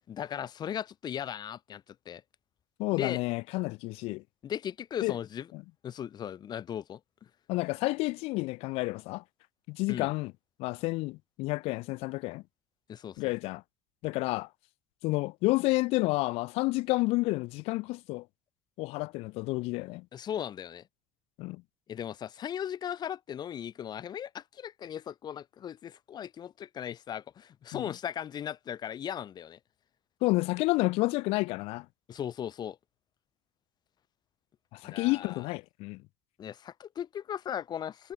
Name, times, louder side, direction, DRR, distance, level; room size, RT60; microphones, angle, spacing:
voice 1, 0.1-2.2 2.9-3.2 4.4-5.5 5.8-7.3 9.9-10.1 12.9-13.4 20.1-20.8 21.9-29.6 32.1-32.8 34.8-35.5 36.4-38.1, left 9 dB, 40° left, 1.1 m, -37 dB
voice 2, 2.8-4.2 5.0-5.1 5.5-5.6 7.5-9.2 9.7-10.3 10.6-12.4 13.2-13.6 14.0-14.5 15.0-18.2 18.8-20.0 21.4-21.6 27.7-27.9 30.2-31.9 34.7-36.0, left 22 dB, 65° left, 0.5 m, -30 dB
supercardioid pair, 100°, 11 cm